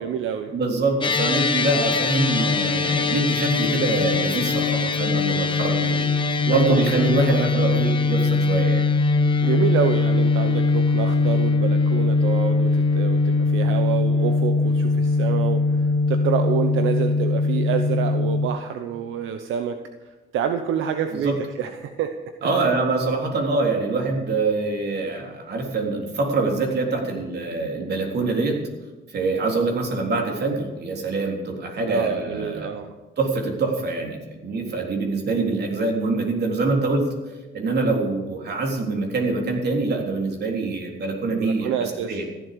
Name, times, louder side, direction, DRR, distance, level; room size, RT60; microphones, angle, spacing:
voice 1, 0.0-0.6 0.9-1.0 6.5-7.1 7.5-7.8 9.4-19.8 20.3-22.7 31.8-32.9 41.3-42.2, right 8 dB, 80° right, 7 dB, 1.0 m, -28 dB
voice 2, 0.5-6.1 6.5-8.9 21.2-21.3 22.4-28.6 29.1-32.7 33.2-37.1 37.5-42.2, right 3 dB, 55° right, 1 dB, 3.7 m, -24 dB
sound 1, 1.0-18.5, left 3 dB, 25° left, 1.4 m, -21 dB
15.0 x 11.5 x 6.8 m, 1.2 s
cardioid pair, 90°, 20 cm